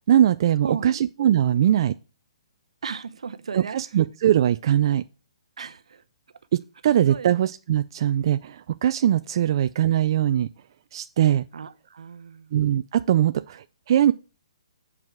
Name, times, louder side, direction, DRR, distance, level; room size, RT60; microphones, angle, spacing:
voice 1, 0.1-1.9 3.5-5.0 6.5-10.5 10.9-11.4 12.5-14.1, right 11 dB, 45° right, 0.3 m, -21 dB
voice 2, 0.6-1.0 2.8-3.8 5.6-6.0 7.1-7.3 11.5-12.5, right 6 dB, 75° right, 0.8 m, -35 dB
7.7 x 4.7 x 6.0 m
hypercardioid pair, 150°, 3 cm